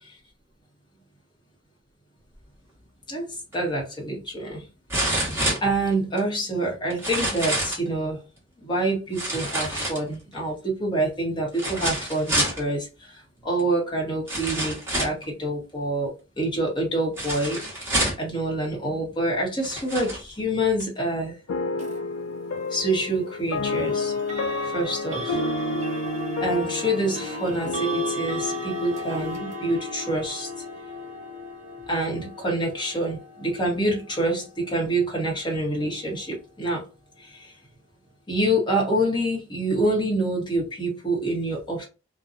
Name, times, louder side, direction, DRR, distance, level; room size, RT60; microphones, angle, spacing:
voice 1, 3.1-4.7 5.0-5.3 5.6-8.2 8.6-17.9 18.2-21.4 22.7-24.1 24.6-25.4 26.4-30.5 31.9-36.8 37.2-37.5 38.3-41.9, right 1 dB, 25° left, 1.0 m, -27 dB
sound 1, 3.5-3.6 4.9-6.2 6.9-7.9 9.1-10.3 11.5-12.6 13.6-13.7 14.3-15.2 17.2-18.3 19.1-19.2 19.6-20.2 20.8-20.9, right 1 dB, 15° right, 1.2 m, -27 dB
sound 2, 21.5-30.7, left 2 dB, 90° left, 0.4 m, -31 dB
sound 3, 21.8-22.0 23.7-36.5, left 2 dB, 35° right, 0.7 m, -36 dB
2.7 x 2.2 x 2.4 m
head